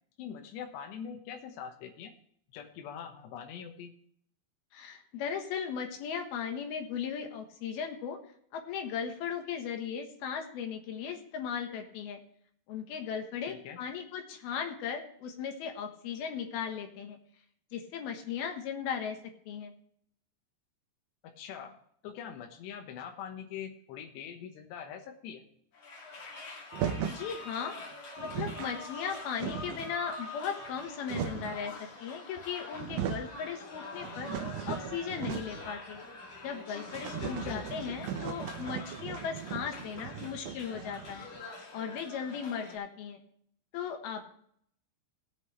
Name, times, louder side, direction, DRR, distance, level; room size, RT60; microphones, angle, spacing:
voice 1, 0.2-2.1 2.5-3.9 13.4-13.8 21.2-21.8 22.0-25.4 37.1-37.7 40.7-40.8, left 8 dB, 85° left, 3 dB, 3.2 m, -43 dB
voice 2, 4.7-8.2 8.5-12.2 12.7-17.2 17.7-19.2 19.5-19.7 27.0-27.8 28.2-31.7 32.0-34.3 34.7-36.0 36.4-41.3 41.7-43.2 43.7-44.3, left 7 dB, 70° left, 4 dB, 3.2 m, -37 dB
sound 1, 25.7-42.8, left 2 dB, 45° left, 3.0 m, -45 dB
sound 2, 26.7-27.3 27.9-28.0 28.2-28.7 29.1-30.0 30.7-31.6 32.4-32.5 32.7-33.3 33.7-35.7 36.0-36.1 36.4-36.5 36.9-41.4, right 9 dB, 80° right, 2.8 m, -38 dB
18.5 x 8.4 x 3.2 m, 0.66 s
omnidirectional pair, 4.8 m